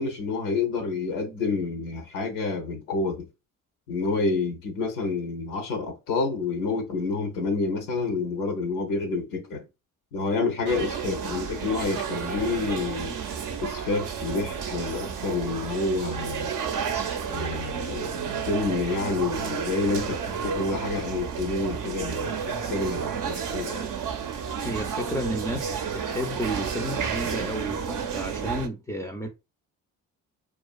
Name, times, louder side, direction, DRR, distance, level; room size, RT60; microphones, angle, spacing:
voice 1, 0.0-3.3 3.9-9.6 10.1-13.1 13.6-16.5 17.3-22.4 22.6-23.9, left 3 dB, 85° left, 0.7 m, -28 dB
sound 1, 10.7-28.7, right 7 dB, 50° right, 0.5 m, -31 dB
voice 2, 24.6-29.3, equal, 10° left, 0.4 m, -32 dB
2.4 x 2.3 x 2.2 m
hypercardioid pair, 50°, 39 cm